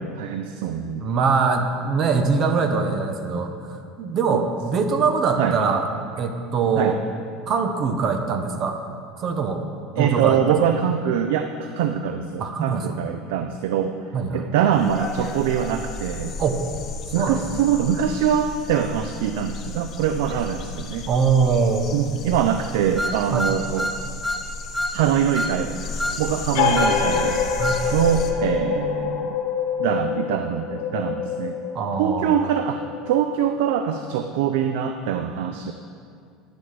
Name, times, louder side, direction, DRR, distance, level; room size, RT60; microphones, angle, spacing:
voice 1, 0.0-1.1 4.3-4.5 5.4-5.6 6.8-7.0 10.0-14.0 14.3-16.3 17.1-21.1 21.9-23.9 24.9-27.4 27.9-29.4 29.8-31.6 32.0-35.7, right 8 dB, 85° right, 7 dB, 0.4 m, -23 dB
voice 2, 1.0-3.5 4.0-5.9 6.2-7.0 7.5-8.8 9.2-9.6 10.0-10.4 12.4-12.8 14.1-14.4 16.4-16.6 17.2-17.4 21.1-21.9 23.3-23.5 26.6-26.8 27.6-28.0 31.7-32.3, right 5 dB, 40° right, 6 dB, 0.7 m, -22 dB
sound 1, 14.7-28.3, left 4 dB, 35° left, 0.7 m, -34 dB
sound 2, 23.0-24.5 24.7-25.0 25.3-25.6 26.0-26.2 26.7-27.0 27.6-27.8, equal, ahead, 0.4 m, -27 dB
sound 3, 26.5-33.8, left 7 dB, 85° left, 1.0 m, -26 dB
10.0 x 7.8 x 3.2 m, 2.3 s
supercardioid pair, 140°, 0 cm